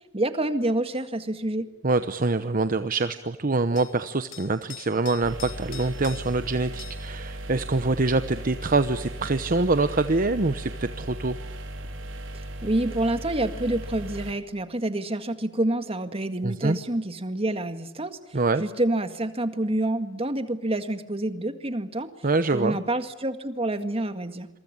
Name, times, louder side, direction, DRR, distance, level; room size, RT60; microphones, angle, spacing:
voice 1, 0.1-1.7 12.3-18.2 18.6-22.1 22.5-24.5, right 1 dB, 30° right, 9 dB, 1.9 m, -27 dB
sound 1, 0.9-1.1 3.8-3.9 4.3-6.4 6.8-7.1 9.6-9.7, left 10 dB, 90° left, 3.4 m, -43 dB
voice 2, 1.8-11.4 16.4-16.8 18.3-18.6 22.2-22.8, right 3 dB, 45° right, 11 dB, 0.9 m, -25 dB
sound 2, 5.2-14.3, right 1 dB, 90° right, 4.4 m, -37 dB
27.5 x 23.5 x 8.8 m, 0.92 s
head